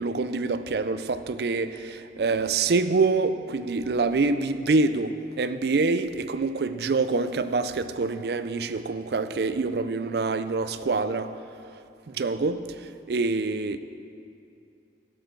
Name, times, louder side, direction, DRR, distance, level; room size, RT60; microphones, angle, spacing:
voice 1, 0.0-11.3 12.1-12.6 13.1-13.8, right 3 dB, 70° right, 0.4 m, -26 dB
16.0 x 7.7 x 4.4 m
head